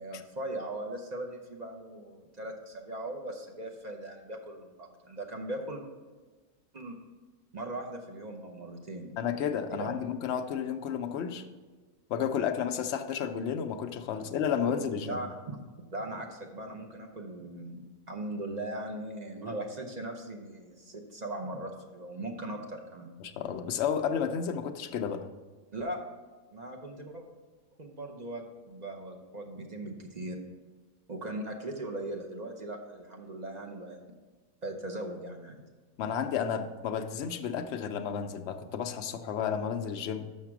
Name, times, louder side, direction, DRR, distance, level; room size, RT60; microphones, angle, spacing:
voice 1, 0.0-5.8 6.7-7.0 7.5-9.1 9.7-10.0 14.7-15.7 15.9-23.1 25.7-26.0 26.5-27.2 27.8-30.4 31.1-34.1 34.6-35.6, right 1 dB, 40° right, 3 dB, 0.6 m, -39 dB
voice 2, 9.2-11.4 12.1-15.2 23.2-25.2 36.0-40.3, left 7 dB, 65° left, 7 dB, 0.7 m, -32 dB
6.5 x 5.8 x 5.9 m, 1.3 s
omnidirectional pair, 1.5 m